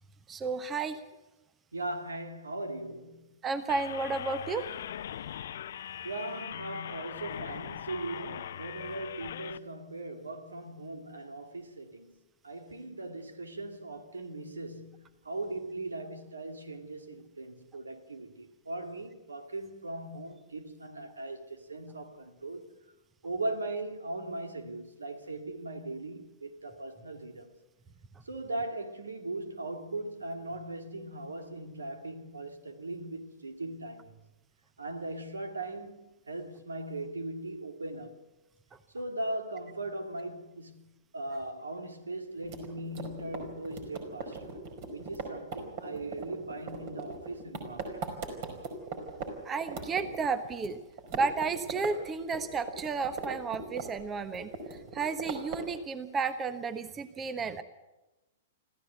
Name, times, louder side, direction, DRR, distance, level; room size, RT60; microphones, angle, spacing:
voice 1, 0.3-1.0 3.4-4.7 49.4-50.8 51.1-57.6, right 4 dB, 20° right, 1.2 m, -32 dB
voice 2, 1.7-3.3 6.0-12.1 12.4-22.7 23.2-27.5 28.2-34.2 34.8-36.0 36.3-38.2 38.9-44.6 44.9-48.0, right 2 dB, 75° right, 2.4 m, -39 dB
sound 1, 3.7-9.6, left 10 dB, 60° left, 0.7 m, -40 dB
sound 2, 42.4-49.3 49.6-50.7 51.0-51.9 52.2-54.1 54.3-55.8, right 5 dB, 45° right, 5.0 m, -39 dB
26.0 x 15.0 x 8.1 m
figure-of-eight pair, 105°, 0 cm